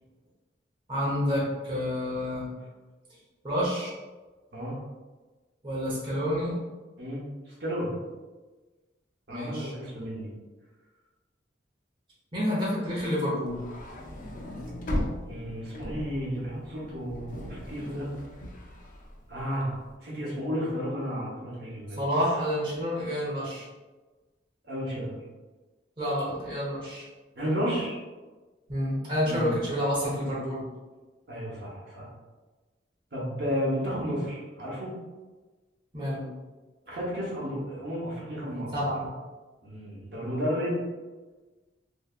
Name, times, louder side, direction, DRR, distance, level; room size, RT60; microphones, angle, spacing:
voice 1, 0.9-2.5 3.4-3.9 5.6-6.6 9.3-9.7 12.3-13.6 22.0-23.7 26.0-27.1 28.7-30.6 35.9-36.3 38.7-39.1, equal, 30° right, -7 dB, 0.9 m, -29 dB
voice 2, 7.0-7.9 9.3-10.3 15.2-18.1 19.3-19.8 20.0-22.0 24.6-25.2 27.3-28.0 29.2-29.6 31.3-32.1 33.1-34.9 36.8-38.7 39.6-40.8, equal, 65° right, -6 dB, 1.0 m, -32 dB
sound 1, 13.5-19.8, left 1 dB, 50° left, 0.5 m, -37 dB
3.2 x 2.7 x 2.4 m, 1.2 s
head